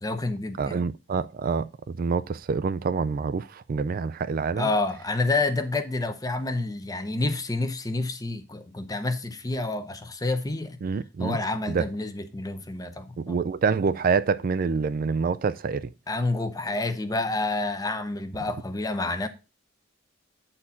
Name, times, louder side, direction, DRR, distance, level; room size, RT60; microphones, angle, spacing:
voice 1, 0.0-0.8 4.6-10.8 11.2-13.4 16.1-19.3, left 2 dB, 20° left, 0.8 m, -28 dB
voice 2, 0.6-4.7 10.8-11.4 11.7-11.9 13.2-15.9, right 5 dB, 50° right, 0.4 m, -26 dB
8.7 x 4.4 x 5.6 m
head